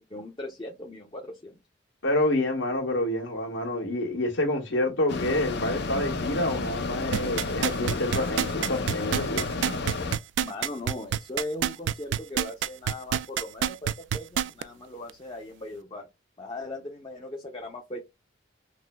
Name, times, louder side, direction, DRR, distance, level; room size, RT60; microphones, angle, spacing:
voice 1, 0.1-1.6 10.4-16.1 16.4-18.0, left 2 dB, 25° left, 0.7 m, -38 dB
voice 2, 2.0-9.5, left 1 dB, 80° left, 1.6 m, -28 dB
Mechanisms, 5.1-10.2, left 3 dB, 60° left, 0.6 m, -31 dB
sound 1, 7.1-14.6 15.1-15.2, right 9 dB, 70° right, 0.3 m, -27 dB
5.9 x 2.1 x 2.2 m
head